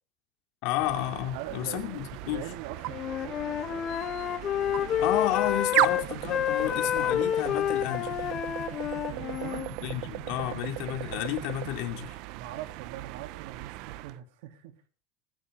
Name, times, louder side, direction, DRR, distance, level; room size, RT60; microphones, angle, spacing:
voice 1, 0.6-2.5 5.0-8.2 9.8-12.2, left 14 dB, 60° left, 2.5 m, -31 dB
sound 1, 0.7-14.2, right 19 dB, 55° right, 0.6 m, -36 dB
voice 2, 1.3-3.8 6.6-6.7 9.1-9.7 12.3-14.8, right 12 dB, 80° right, 3.1 m, -42 dB
Wind instrument woodwind instrument, 2.9-9.7, left 10 dB, 30° left, 1.0 m, -29 dB
20.5 x 14.5 x 3.8 m
cardioid pair, 175°, 0 cm